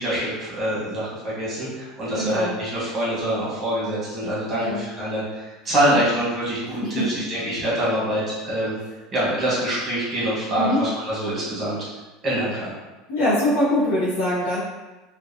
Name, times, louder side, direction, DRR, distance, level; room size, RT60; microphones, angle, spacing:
voice 1, 0.0-8.8 9.1-11.8 12.2-12.7, right 1 dB, 20° right, -8 dB, 1.1 m, -25 dB
voice 2, 2.1-2.5 4.6-4.8 5.7-6.1 6.8-7.1 10.5-10.8 13.1-14.6, left 1 dB, 80° left, -8 dB, 0.7 m, -23 dB
2.6 x 2.2 x 2.6 m, 1.2 s
cardioid pair, 170°, 0 cm